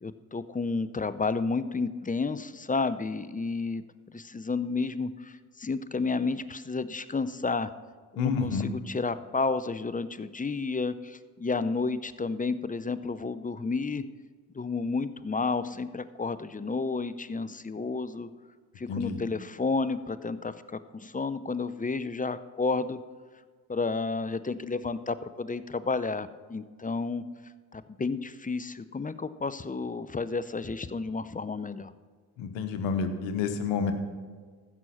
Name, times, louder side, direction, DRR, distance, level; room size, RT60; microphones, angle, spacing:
voice 1, 0.0-3.8 4.1-5.3 5.6-7.7 8.1-14.0 14.6-18.3 18.8-23.0 23.7-27.2 27.7-31.9, left 4 dB, 20° left, 15 dB, 0.6 m, -31 dB
voice 2, 8.2-8.7 18.9-19.2 32.4-33.9, left 5 dB, 80° left, 8 dB, 1.2 m, -29 dB
15.0 x 6.3 x 5.7 m, 1.5 s
hypercardioid pair, 50°, 44 cm